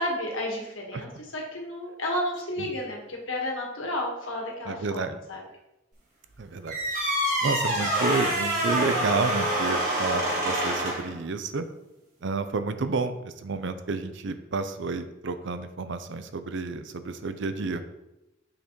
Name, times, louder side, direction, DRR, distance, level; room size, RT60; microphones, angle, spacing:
voice 1, 0.0-5.4, left 1 dB, 75° left, -1 dB, 1.6 m, -32 dB
voice 2, 4.7-5.2 6.4-6.8 7.4-11.7 12.2-17.8, right 4 dB, 60° right, 10 dB, 0.5 m, -30 dB
sound 1, 6.7-11.1, right 1 dB, 40° right, 2.0 m, -26 dB
6.5 x 5.7 x 3.1 m, 0.94 s
head